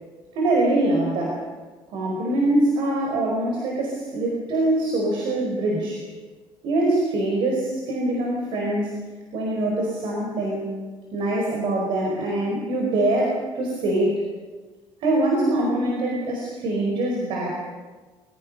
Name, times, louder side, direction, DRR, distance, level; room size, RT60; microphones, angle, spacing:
voice 1, 0.3-1.4 1.9-6.0 6.6-9.0 9.3-10.8 11.1-14.2 15.0-17.6, right 1 dB, 65° right, -1 dB, 5.0 m, -23 dB
26.0 x 22.5 x 5.6 m, 1.4 s
cardioid pair, 170°, 9 cm